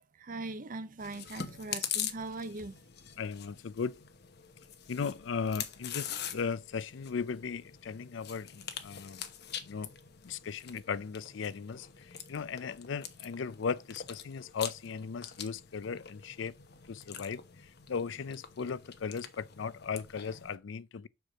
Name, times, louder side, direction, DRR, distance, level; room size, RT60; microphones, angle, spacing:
voice 1, 0.2-2.7, right 2 dB, 45° right, 0.7 m, -40 dB
Chewing mastication, 1.0-20.6, left 9 dB, 60° left, 1.0 m, -44 dB
voice 2, 3.2-4.0 4.9-9.2 9.7-9.9 10.2-16.6 16.9-17.4 17.9-21.1, left 5 dB, 75° left, 0.5 m, -37 dB
6.6 x 4.6 x 6.1 m
head